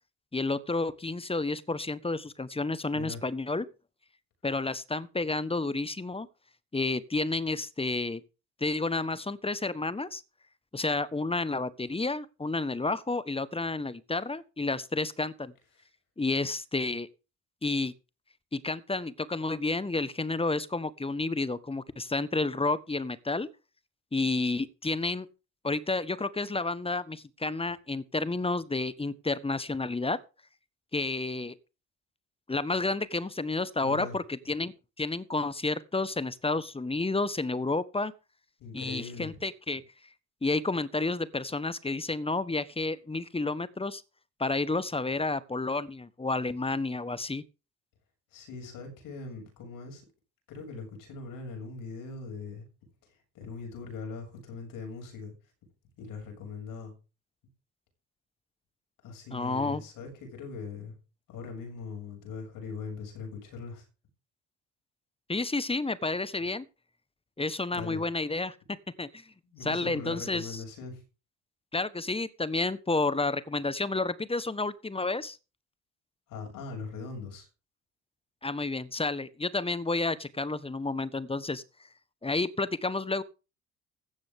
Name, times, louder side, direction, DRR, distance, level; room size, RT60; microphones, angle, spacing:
voice 1, 0.3-3.7 4.4-6.3 6.7-8.2 8.6-10.2 10.7-15.5 16.2-17.1 17.6-17.9 18.5-23.5 24.1-25.3 25.6-30.2 30.9-31.5 32.5-38.1 38.7-39.8 40.4-44.0 44.4-47.4 59.3-59.8 65.3-66.6 67.4-68.6 69.0-69.2 69.6-70.6 71.7-75.4 78.4-81.6 82.2-83.2, left 3 dB, 15° left, 1.3 m, -30 dB
voice 2, 2.9-3.2 33.8-34.2 38.6-39.3 48.3-50.0 50.5-52.7 53.3-55.3 56.0-56.9 59.0-60.9 61.3-63.9 67.7-68.0 69.4-71.0 76.3-77.5, left 4 dB, 70° left, 7.0 m, -41 dB
16.0 x 12.0 x 3.7 m
hypercardioid pair, 55°, 35 cm